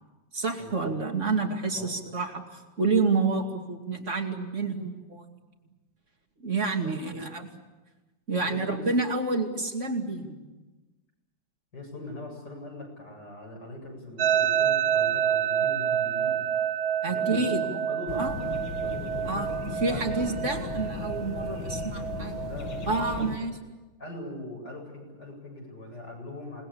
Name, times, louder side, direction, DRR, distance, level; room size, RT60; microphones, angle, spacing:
voice 1, 0.3-5.2 6.4-7.5 8.3-10.5 17.0-17.6 18.1-18.4 19.2-22.4 22.9-23.5, right 3 dB, 40° right, 3 dB, 2.8 m, -29 dB
voice 2, 6.8-7.3 8.5-8.8 11.7-16.4 17.1-18.5 18.7-19.5 19.9-20.5 21.5-21.7 22.4-23.5 24.0-26.6, left 1 dB, 60° left, -1 dB, 8.8 m, -41 dB
sound 1, 14.2-23.2, right 9 dB, 55° right, 1.6 m, -28 dB
sound 2, 18.1-23.4, left 6 dB, 85° left, 2.1 m, -36 dB
28.5 x 20.0 x 8.6 m, 1.2 s
omnidirectional pair, 2.1 m